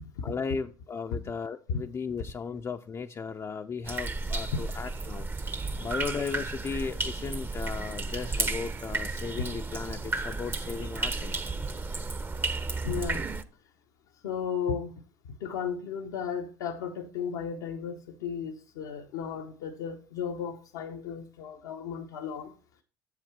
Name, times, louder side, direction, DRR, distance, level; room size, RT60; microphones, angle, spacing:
voice 1, 0.2-5.3 5.8-11.4, left 5 dB, 30° left, 0.4 m, -36 dB
sound 1, 3.9-13.4, right 3 dB, 20° right, 0.6 m, -33 dB
voice 2, 12.8-13.3 14.2-22.5, left 6 dB, 75° left, 0.7 m, -34 dB
7.1 x 4.9 x 4.6 m
hypercardioid pair, 65°, 10 cm